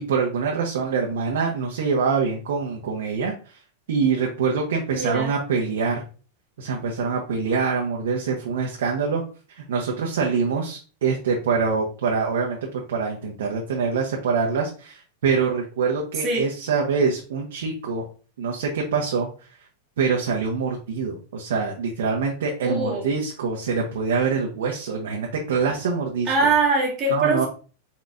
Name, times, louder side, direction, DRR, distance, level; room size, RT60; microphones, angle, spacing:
voice 1, 0.0-3.3 3.9-6.0 6.6-9.2 9.5-18.0 18.4-19.3 20.0-26.3 27.1-27.5, right 5 dB, 80° right, -1 dB, 0.9 m, -24 dB
voice 2, 4.9-5.3 16.2-16.5 22.6-23.1 25.6-25.7 26.3-27.5, right 3 dB, 25° right, -2 dB, 1.6 m, -22 dB
4.2 x 4.2 x 2.5 m, 0.37 s
supercardioid pair, 170°, 0 cm